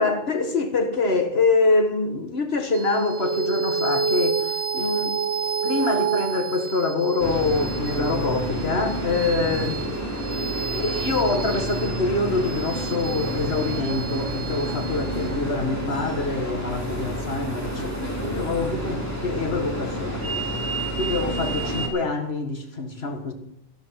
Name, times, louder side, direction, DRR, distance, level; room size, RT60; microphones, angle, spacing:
voice 1, 0.0-5.2 5.6-9.8 10.7-20.5 21.0-23.3, left 3 dB, 80° left, 2.0 m, -25 dB
sound 1, 2.7-17.5, right 6 dB, 80° right, 1.2 m, -30 dB
sound 2, 7.2-21.9, right 1 dB, 15° left, 2.9 m, -29 dB
12.5 x 12.5 x 5.8 m
omnidirectional pair, 1.1 m